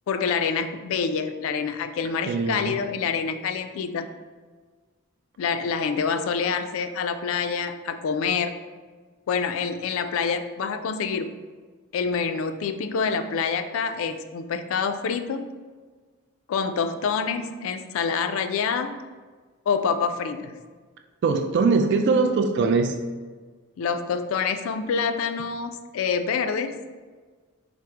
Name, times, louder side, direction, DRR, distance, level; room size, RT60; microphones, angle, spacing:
voice 1, 0.1-4.1 5.4-8.5 9.3-11.3 11.9-15.5 16.5-19.0 19.7-20.6 23.8-26.8, left 6 dB, 65° left, 9 dB, 0.3 m, -26 dB
voice 2, 2.3-2.8 21.2-23.0, right 4 dB, 55° right, 5 dB, 0.3 m, -21 dB
4.8 x 2.0 x 4.4 m, 1.4 s
head